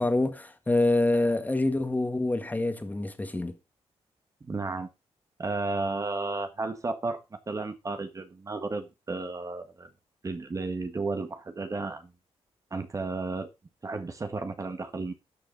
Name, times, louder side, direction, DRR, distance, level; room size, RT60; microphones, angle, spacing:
voice 1, 0.0-3.5, left 2 dB, 15° left, 1.8 m, -26 dB
voice 2, 4.4-4.9 5.4-7.2 7.5-9.9 10.2-12.1 12.7-13.5 13.8-15.1, right 3 dB, 30° right, 1.6 m, -33 dB
12.0 x 6.5 x 5.3 m
cardioid pair, 105°, 11 cm